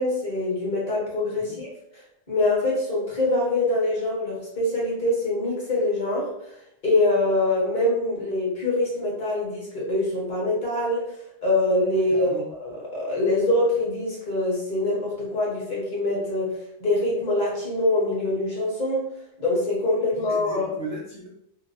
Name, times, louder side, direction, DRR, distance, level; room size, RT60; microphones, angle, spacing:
voice 1, 0.0-1.7 2.3-6.5 6.8-11.2 11.4-12.3 12.6-19.1 19.4-20.7, left 2 dB, 40° left, -5 dB, 1.0 m, -24 dB
voice 2, 12.1-12.5 20.2-21.3, right 2 dB, 55° right, -4 dB, 0.4 m, -37 dB
3.0 x 2.1 x 2.5 m, 0.77 s
omnidirectional pair, 1.3 m